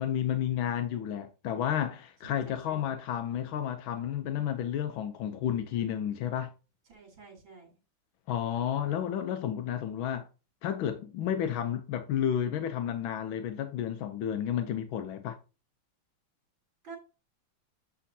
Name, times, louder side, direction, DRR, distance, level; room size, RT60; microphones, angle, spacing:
voice 1, 0.0-6.5 8.3-10.3 10.6-15.4, left 10 dB, 85° left, 1.5 m, -31 dB
voice 2, 2.2-2.9 6.9-7.8 16.8-17.0, right 4 dB, 75° right, 3.9 m, -49 dB
8.2 x 6.3 x 2.7 m
omnidirectional pair, 2.1 m